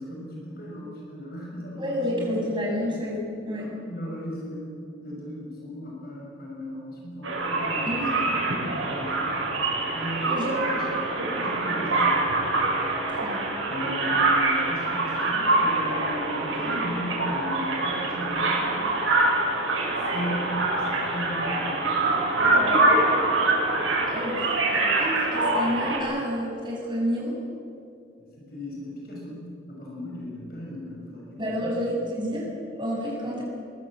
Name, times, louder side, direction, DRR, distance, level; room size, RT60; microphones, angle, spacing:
voice 1, 0.0-2.3 3.6-8.4 8.9-9.4 9.9-11.0 11.3-12.3 13.7-18.8 20.1-21.8 28.2-31.8, equal, 50° left, -3 dB, 6.3 m, -36 dB
voice 2, 1.8-3.7 7.9-8.3 10.3-10.6 10.9-11.0 13.1-13.5 24.1-27.4 31.4-33.4, equal, 25° right, -3 dB, 7.5 m, -30 dB
sound 1, 7.2-26.0, right 2 dB, 90° right, 7.9 m, -25 dB
24.0 x 22.5 x 7.7 m, 2.7 s
head